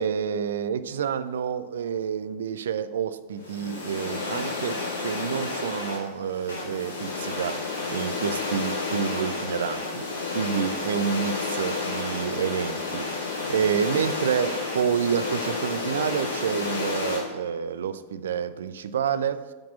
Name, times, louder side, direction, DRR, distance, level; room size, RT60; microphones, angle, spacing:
voice 1, 0.0-19.5, right 7 dB, 65° right, 13 dB, 0.5 m, -29 dB
sound 1, 3.4-17.2, left 3 dB, 65° left, 2.4 m, -31 dB
8.8 x 6.0 x 7.1 m, 1.3 s
figure-of-eight pair, 90°, 0 cm